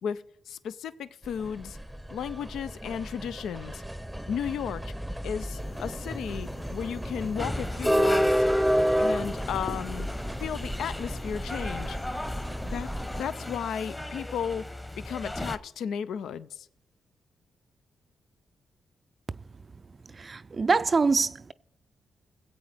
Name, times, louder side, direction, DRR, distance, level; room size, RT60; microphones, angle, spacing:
voice 1, 0.0-1.8 2.1-3.8 4.3-4.9 5.2-8.4 9.0-10.1 10.4-12.0 12.7-16.7, left 8 dB, 80° left, 0.4 m, -34 dB
sound 1, 1.2-13.2, equal, 5° right, 0.7 m, -30 dB
sound 2, 5.6-13.6, left 3 dB, 45° left, 1.2 m, -44 dB
sound 3, 7.4-15.6, left 1 dB, 15° left, 1.0 m, -37 dB
voice 2, 20.2-21.5, right 4 dB, 45° right, 0.4 m, -24 dB
22.5 x 8.0 x 3.4 m
supercardioid pair, 50°, 0 cm